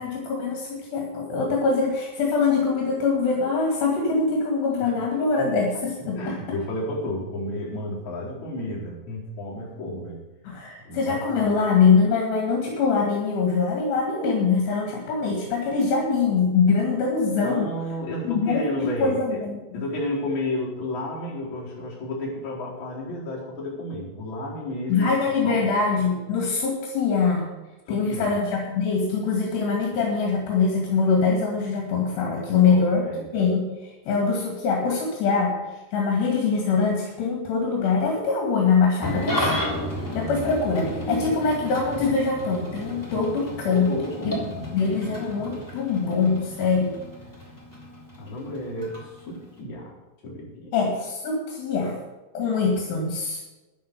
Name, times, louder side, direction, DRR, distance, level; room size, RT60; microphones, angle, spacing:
voice 1, 0.0-6.4 10.4-17.7 18.2-19.6 24.9-27.5 27.9-33.0 33.3-35.6 35.9-39.6 40.1-43.9 44.2-44.4 44.7-47.0 50.7-52.0 52.3-53.4, left 4 dB, 75° left, 0 dB, 4.3 m, -23 dB
voice 2, 6.2-10.2 10.8-11.5 17.4-19.4 19.7-25.1 25.4-25.7 27.9-28.4 32.7-33.3 40.9-41.3 43.7-44.3 48.2-49.9 50.2-50.7, left 1 dB, 45° left, -6 dB, 5.6 m, -32 dB
Engine starting / Idling, 39.0-49.6, left 1 dB, 5° left, 2.6 m, -32 dB
11.5 x 11.0 x 6.9 m, 1.1 s
omnidirectional pair, 4.9 m